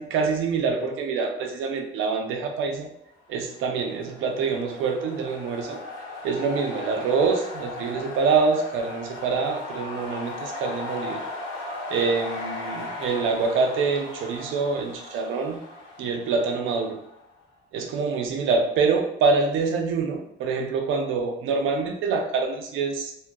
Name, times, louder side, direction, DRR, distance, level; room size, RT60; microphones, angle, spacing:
voice 1, 0.0-2.9 3.3-5.8 6.2-11.2 11.9-15.6 16.0-17.0 17.7-23.1, right 4 dB, 90° right, 3 dB, 0.4 m, -25 dB
sound 1, 3.5-17.2, left 2 dB, 70° left, 0.9 m, -37 dB
2.4 x 2.1 x 2.6 m, 0.79 s
cardioid pair, 90°, 20 cm